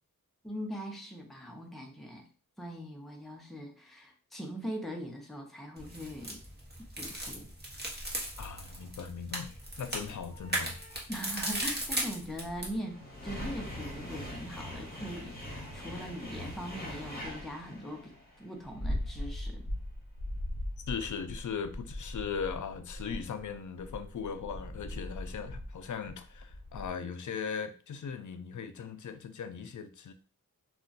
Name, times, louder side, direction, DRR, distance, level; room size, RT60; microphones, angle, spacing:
voice 1, 0.4-2.3 2.6-6.4 7.0-7.5 11.1-19.7, equal, ahead, 2 dB, 0.6 m, -41 dB
sound 1, 5.8-12.8, right 1 dB, 30° right, 0.9 m, -37 dB
voice 2, 8.4-11.1 20.9-30.1, left 6 dB, 60° left, 10 dB, 0.4 m, -39 dB
sound 2, 10.1-10.9 11.9-26.9, left 1 dB, 25° left, 1.1 m, -41 dB
2.4 x 2.2 x 3.8 m, 0.36 s
wide cardioid pair, 85°, 35 cm